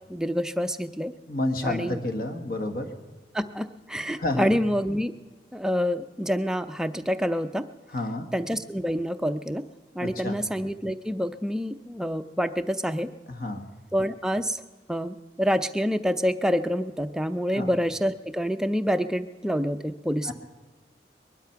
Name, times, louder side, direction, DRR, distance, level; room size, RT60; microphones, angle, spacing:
voice 1, 0.1-1.1 1.6-2.0 3.3-5.1 5.5-7.6 8.3-9.6 9.9-13.1 13.9-14.6 14.9-20.3, equal, 5° right, 8 dB, 0.5 m, -27 dB
voice 2, 1.3-3.0 4.2-4.5 7.9-8.3 10.0-10.4 13.3-13.7 17.5-17.7 20.2-20.3, left 2 dB, 55° left, 6 dB, 1.4 m, -30 dB
21.0 x 11.5 x 5.8 m, 1.2 s
head